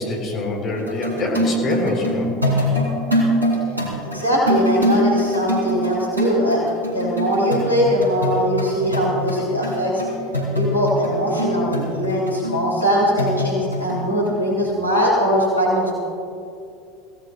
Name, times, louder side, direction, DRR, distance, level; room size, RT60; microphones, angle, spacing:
voice 1, 0.0-2.3, left 2 dB, 40° left, -1 dB, 3.9 m, -24 dB
sound 1, 0.8-11.1 11.4-14.0 14.3-14.4, equal, 85° right, 2.8 m, -24 dB
voice 2, 4.1-10.0 10.5-15.9, equal, 85° left, -4 dB, 3.2 m, -21 dB
24.0 x 16.5 x 2.4 m, 2.5 s
figure-of-eight pair, 75°, 0 cm